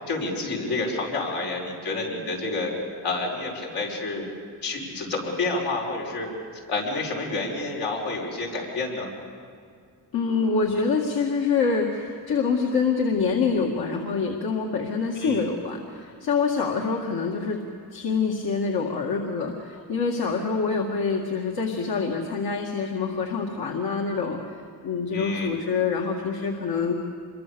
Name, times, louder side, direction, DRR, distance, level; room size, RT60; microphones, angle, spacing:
voice 1, 0.0-2.7 3.0-4.3 4.6-6.3 6.7-9.1 15.2-15.5 25.1-25.6, left 3 dB, 85° left, -2 dB, 6.0 m, -29 dB
voice 2, 10.1-17.6 17.9-24.5 24.8-26.9, left 5 dB, 70° left, 0 dB, 2.1 m, -26 dB
26.5 x 23.0 x 7.0 m, 2.1 s
cardioid pair, 120°, 39 cm